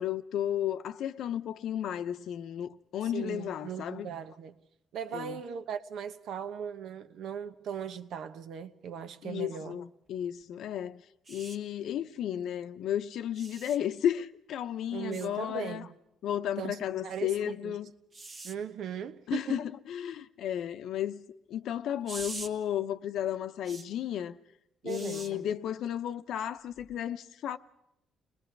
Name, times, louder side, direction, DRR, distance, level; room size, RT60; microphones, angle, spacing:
voice 1, 0.0-4.1 5.1-5.4 9.2-11.0 11.3-15.8 16.2-17.9 19.3-21.2 21.5-24.4 24.8-27.6, left 10 dB, 70° left, 0.8 m, -33 dB
voice 2, 3.1-4.6 4.9-9.8 14.9-15.9 16.6-17.8 18.4-19.7 24.8-25.5, right 7 dB, 70° right, 1.1 m, -38 dB
sound 1, 11.2-11.6 13.3-13.8 15.1-15.3 18.1-18.5 22.0-22.5 23.6-23.8 24.9-25.3 26.8-26.9, right 3 dB, 30° right, 1.4 m, -43 dB
30.0 x 20.5 x 4.7 m
cardioid pair, 155°, 0 cm